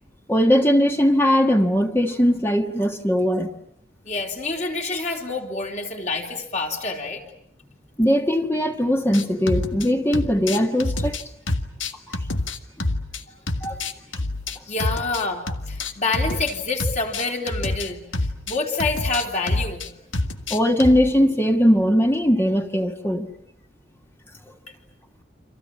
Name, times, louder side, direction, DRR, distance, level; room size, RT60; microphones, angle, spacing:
voice 1, 0.3-3.6 8.0-11.2 12.1-12.2 13.6-13.8 20.5-23.3, equal, 10° left, 1.5 m, -20 dB
voice 2, 4.1-7.2 14.7-18.0 18.5-19.8, left 3 dB, 35° left, 3.7 m, -27 dB
sound 1, 9.1-9.9 10.1-13.2 13.5-16.5 16.8-21.1, left 2 dB, 85° left, 1.8 m, -27 dB
29.5 x 26.0 x 7.3 m
head